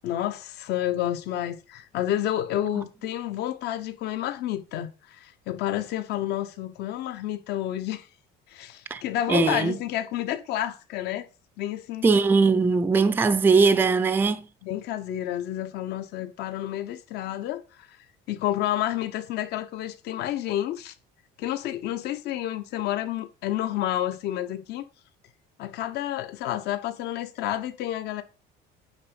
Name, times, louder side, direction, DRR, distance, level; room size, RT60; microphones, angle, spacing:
voice 1, 0.0-8.1 8.5-11.3 11.6-12.0 14.6-17.6 18.3-20.9 21.4-24.9 25.6-28.2, left 12 dB, 55° left, 1.2 m, -30 dB
voice 2, 9.3-9.8 12.0-14.5, right 4 dB, 10° right, 0.5 m, -20 dB
9.6 x 4.0 x 7.0 m
cardioid pair, 175°, 21 cm